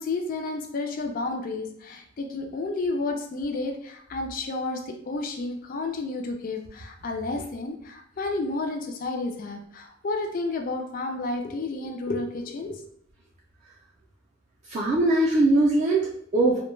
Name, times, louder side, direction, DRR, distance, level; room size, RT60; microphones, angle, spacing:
voice 1, 0.0-12.8, left 3 dB, 40° left, 3 dB, 0.3 m, -31 dB
voice 2, 14.7-16.6, right 2 dB, 35° right, -5 dB, 0.4 m, -21 dB
2.2 x 2.1 x 3.0 m, 0.69 s
head